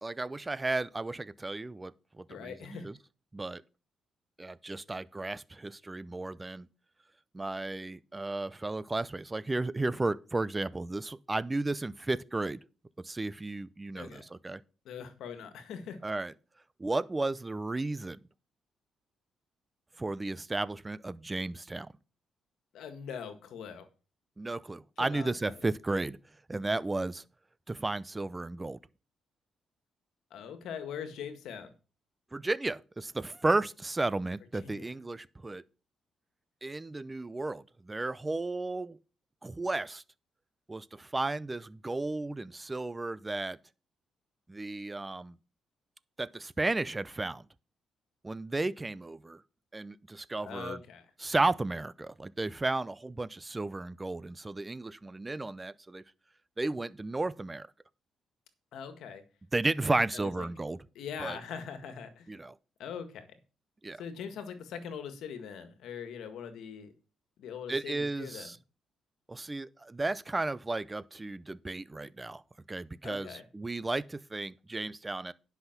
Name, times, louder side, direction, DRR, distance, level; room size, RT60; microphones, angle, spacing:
voice 1, 0.0-3.0 3.3-3.6 4.4-6.7 7.3-12.6 13.0-14.6 16.0-16.3 16.8-18.2 20.0-21.9 24.4-26.2 26.5-27.2 27.7-28.8 32.3-35.6 36.6-39.0 39.4-40.0 40.7-43.6 44.5-45.4 46.2-47.4 48.2-49.4 49.7-50.8 51.2-56.0 56.6-57.7 59.5-60.8 61.2-61.4 62.3-62.5 63.8-64.0 67.7-68.6 69.3-72.4 72.7-75.3, right 2 dB, 20° right, 0.6 m, -33 dB
voice 2, 2.3-2.9 13.9-14.2 14.8-16.0 22.7-23.9 25.0-25.7 30.3-31.7 34.5-34.9 50.4-51.1 58.7-59.2 59.9-60.5 60.9-62.4 62.8-63.3 64.0-66.9 67.4-68.5 73.0-73.4, left 7 dB, 80° left, 1.7 m, -42 dB
10.5 x 5.8 x 5.9 m
cardioid pair, 85°, 0 cm